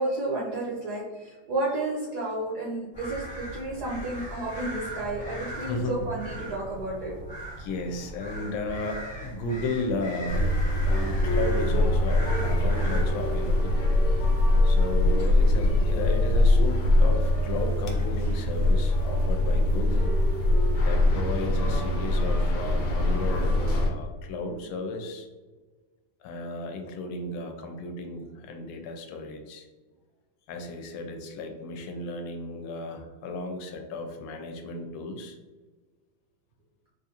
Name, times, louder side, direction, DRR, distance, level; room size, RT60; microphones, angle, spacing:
voice 1, 0.0-7.1, right 2 dB, 70° right, -4 dB, 0.9 m, -31 dB
sound 1, 2.9-13.0, right 1 dB, 10° left, 0.5 m, -39 dB
voice 2, 5.7-6.1 7.6-10.5 10.8-13.8 14.6-20.1 20.8-25.3 26.2-29.7 30.5-35.4, left 2 dB, 85° left, 4 dB, 1.5 m, -34 dB
sound 2, 10.3-23.9, left 1 dB, 70° left, 1.2 m, -23 dB
4.0 x 2.5 x 2.7 m, 1.3 s
omnidirectional pair, 2.4 m